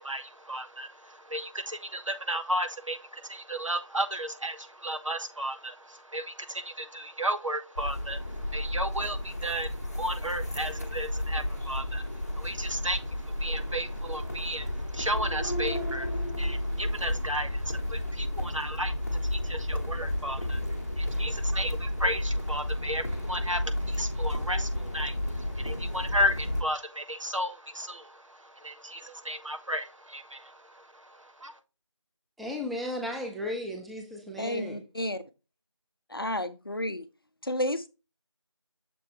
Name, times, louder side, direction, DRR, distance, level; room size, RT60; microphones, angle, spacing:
voice 1, 0.0-31.6, equal, 85° right, 1.3 m, -34 dB
sound 1, 7.8-26.6, left 1 dB, 35° left, 1.0 m, -32 dB
voice 2, 32.4-34.8, left 1 dB, ahead, 0.3 m, -35 dB
voice 3, 34.4-35.2 36.1-37.0 37.4-37.9, left 1 dB, 50° left, 0.6 m, -31 dB
6.9 x 3.1 x 4.6 m
figure-of-eight pair, 175°, 16 cm